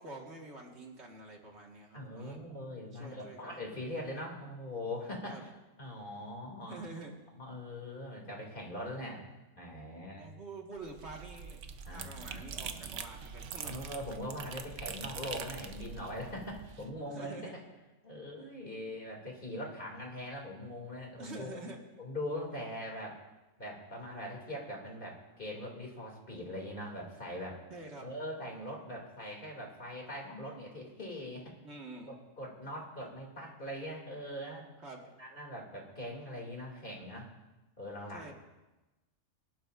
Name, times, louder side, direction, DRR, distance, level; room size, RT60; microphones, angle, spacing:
voice 1, 0.0-2.4 2.9-3.6 5.3-5.4 6.7-7.1 10.2-11.6 11.9-13.9 17.1-17.5 21.2-21.8 27.7-28.1 31.6-32.2 34.8-35.0 38.1-38.3, right 2 dB, 65° right, 0 dB, 2.0 m, -47 dB
voice 2, 1.9-5.5 5.8-6.8 7.3-9.2 9.6-10.3 11.9-12.4 13.6-17.4 18.0-21.6 22.0-23.2 23.6-27.6 28.0-31.5 32.0-34.7 35.2-37.3 37.8-38.3, left 1 dB, 45° left, -1 dB, 2.8 m, -42 dB
sound 1, 10.8-16.9, right 6 dB, 80° right, 1.1 m, -44 dB
22.0 x 12.0 x 2.5 m, 1.1 s
omnidirectional pair, 1.2 m